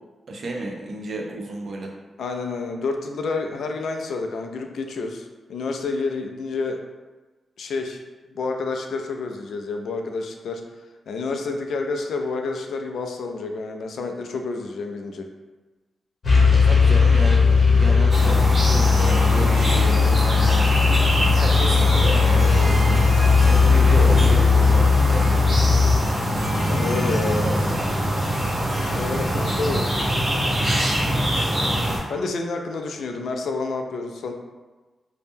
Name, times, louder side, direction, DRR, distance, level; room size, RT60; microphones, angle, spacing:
voice 1, 0.3-1.9 16.5-20.8 21.3-22.6 23.4-25.5 27.2-27.8, right 2 dB, 50° right, 0 dB, 0.5 m, -32 dB
voice 2, 2.2-6.8 7.6-8.0 8.3-10.6 11.1-15.3 26.7-27.5 28.9-29.9 32.1-34.3, left 3 dB, 75° left, 4 dB, 0.3 m, -29 dB
sound 1, 16.2-26.0, left 5 dB, 45° left, 0.8 m, -17 dB
sound 2, 18.1-32.0, equal, 30° right, 1.0 m, -23 dB
Harp, 18.7-29.6, left 1 dB, 75° right, 1.0 m, -36 dB
2.7 x 2.1 x 3.4 m, 1.2 s
wide cardioid pair, 165°, 0 cm